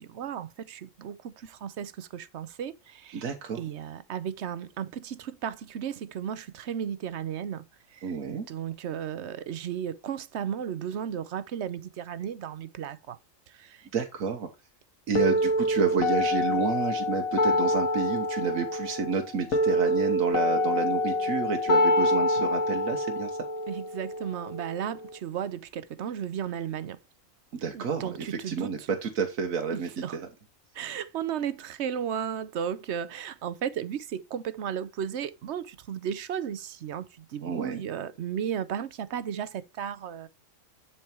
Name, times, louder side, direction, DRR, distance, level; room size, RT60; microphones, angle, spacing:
voice 1, 0.0-3.2 3.6-7.6 7.9-13.2 13.5-13.9 23.7-27.0 27.7-28.9 29.7-30.2 30.7-40.3, right 8 dB, 60° right, 0.9 m, -34 dB
voice 2, 3.1-3.6 8.0-8.5 13.9-14.5 15.1-23.3 27.5-30.3 37.4-37.8, right 5 dB, 85° right, 1.5 m, -30 dB
sound 1, 15.2-25.2, left 1 dB, 85° left, 1.7 m, -26 dB
10.5 x 4.7 x 4.3 m
omnidirectional pair, 1.4 m